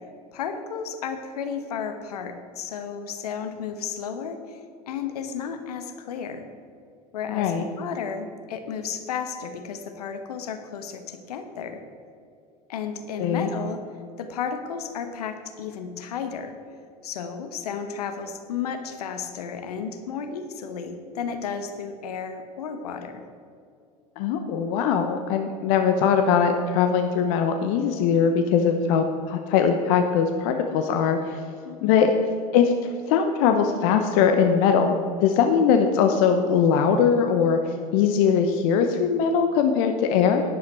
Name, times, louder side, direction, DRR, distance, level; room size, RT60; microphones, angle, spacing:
voice 1, 0.3-4.6 4.9-6.5 7.1-11.8 12.7-13.8 14.2-16.5 17.0-23.2 31.6-32.2, left 6 dB, 80° left, 8 dB, 1.2 m, -33 dB
voice 2, 7.3-7.6 13.2-13.5 24.2-31.4 31.8-32.2 32.5-40.4, left 6 dB, 60° left, 6 dB, 1.0 m, -21 dB
11.5 x 10.5 x 4.4 m, 2.4 s
hypercardioid pair, 80°, 20 cm